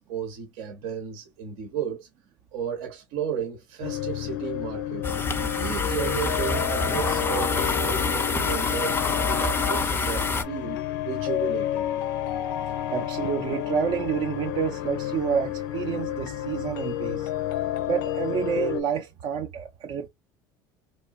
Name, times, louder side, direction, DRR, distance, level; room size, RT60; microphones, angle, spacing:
voice 1, 0.0-2.1 2.5-5.1 5.5-11.9, right 8 dB, 70° right, 0.8 m, -34 dB
sound 1, 3.8-18.8, left 12 dB, 80° left, 0.4 m, -30 dB
sound 2, 5.0-10.4, left 3 dB, 20° left, 0.4 m, -26 dB
voice 2, 12.9-17.3 17.9-20.1, right 7 dB, 50° right, 0.4 m, -28 dB
2.7 x 2.1 x 2.4 m
hypercardioid pair, 85°, 11 cm